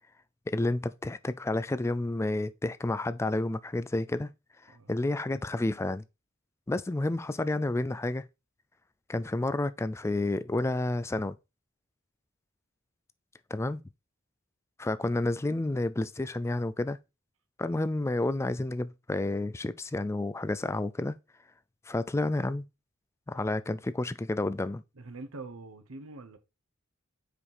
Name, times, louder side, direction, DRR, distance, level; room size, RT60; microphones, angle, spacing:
voice 1, 0.5-4.3 4.7-6.0 6.7-8.2 9.1-11.4 13.5-13.8 14.8-17.0 17.6-21.2 21.9-22.6 23.3-24.8, left 2 dB, 15° left, 0.3 m, -30 dB
voice 2, 25.0-26.4, right 3 dB, 75° right, 1.0 m, -44 dB
5.0 x 4.9 x 5.4 m
head